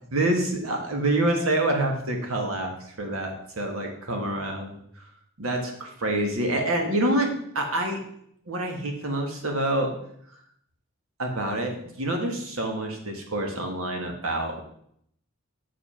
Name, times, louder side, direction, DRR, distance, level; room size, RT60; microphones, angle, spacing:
voice 1, 0.1-4.8 5.4-8.0 8.5-9.9 11.2-14.6, right 1 dB, 80° right, 3 dB, 1.6 m, -27 dB
6.8 x 5.2 x 5.6 m, 0.69 s
head